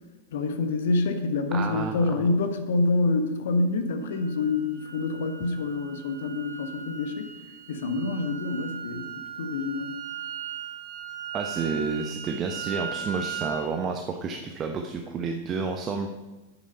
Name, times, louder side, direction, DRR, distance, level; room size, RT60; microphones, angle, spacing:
voice 1, 0.3-7.3 7.7-9.9, left 3 dB, 60° left, 7 dB, 1.4 m, -27 dB
voice 2, 1.5-2.3 11.3-16.1, right 5 dB, 25° right, 4 dB, 1.0 m, -30 dB
sound 1, 4.0-13.7, right 8 dB, 65° right, 2.2 m, -38 dB
10.5 x 8.7 x 5.6 m, 1.1 s
figure-of-eight pair, 95°, 0 cm